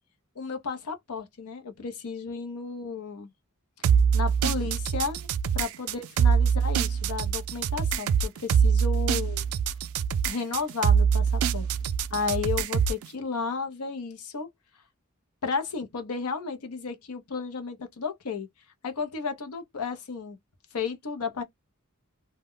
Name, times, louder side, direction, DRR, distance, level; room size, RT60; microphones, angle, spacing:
voice 1, 0.4-3.3 4.1-5.3 5.5-9.4 10.3-11.7 12.1-14.5 15.4-18.5 18.8-20.4 20.7-21.4, left 5 dB, 80° left, 0.6 m, -33 dB
sound 1, 3.8-13.1, right 7 dB, 70° right, 0.3 m, -24 dB
2.1 x 2.1 x 3.6 m
head